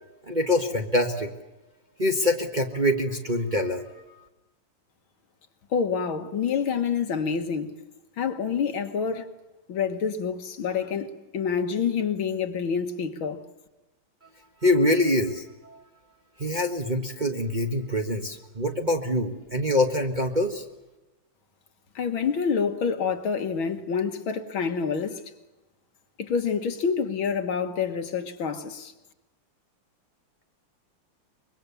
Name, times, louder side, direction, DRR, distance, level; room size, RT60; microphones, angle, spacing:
voice 1, 0.3-1.3 2.0-3.8 14.6-15.8 16.4-20.6, left 1 dB, 25° right, 1.4 m, -25 dB
voice 2, 5.7-7.8 8.2-9.3 9.7-11.1 11.3-13.4 22.0-25.2 26.2-28.9, left 6 dB, 65° left, 2.2 m, -27 dB
25.0 x 22.5 x 7.0 m
omnidirectional pair, 2.4 m